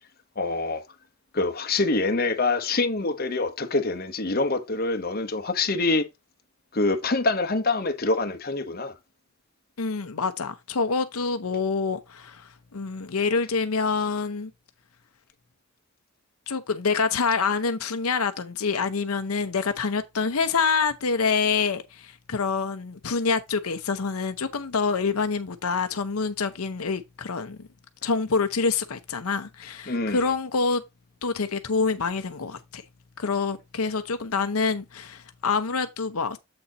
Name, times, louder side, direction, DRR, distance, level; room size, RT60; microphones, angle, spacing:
voice 1, 0.4-0.8 1.3-6.0 6.7-8.9 29.9-30.2, left 3 dB, 45° left, 1.0 m, -25 dB
voice 2, 9.8-14.5 16.5-27.7 28.0-30.8 31.2-32.8 33.2-36.4, left 4 dB, 85° left, 0.7 m, -26 dB
7.8 x 4.2 x 4.0 m
head